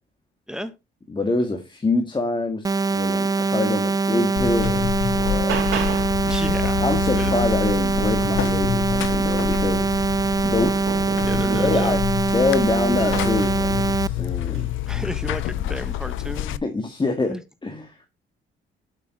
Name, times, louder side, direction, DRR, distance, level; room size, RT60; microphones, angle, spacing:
voice 1, 1.1-5.7 6.8-10.0 10.4-10.8 11.5-12.0 12.3-14.7 16.6-17.4 17.6-18.1, left 3 dB, 25° left, 5 dB, 1.9 m, -25 dB
sound 1, 2.6-14.1, right 4 dB, 20° right, 0.4 m, -23 dB
Buzz, 4.4-16.6, left 12 dB, 85° left, 0.7 m, -28 dB
sound 2, 4.7-6.3 8.7-8.8 9.2-12.2 12.9-13.4 14.4-14.7, right 8 dB, 85° right, 3.2 m, -34 dB
voice 2, 6.2-6.8 7.1-7.5 11.2-12.0 14.9-16.6 17.3-17.4, equal, 5° right, 11 dB, 1.2 m, -32 dB
8.1 x 7.3 x 4.2 m, 0.24 s
cardioid pair, 90°, 20 cm